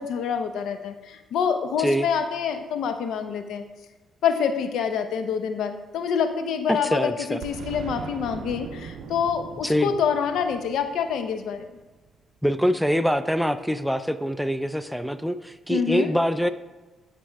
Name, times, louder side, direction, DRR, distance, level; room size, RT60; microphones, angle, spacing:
voice 1, 0.0-3.6 4.2-11.7 15.7-16.1, left 7 dB, 75° left, 8 dB, 0.7 m, -26 dB
voice 2, 6.7-7.4 9.6-9.9 12.4-16.5, equal, ahead, 12 dB, 0.4 m, -24 dB
Boom, 7.4-12.1, right 7 dB, 75° right, 0.5 m, -40 dB
11.0 x 5.2 x 3.4 m, 1.2 s
cardioid pair, 90°, 0 cm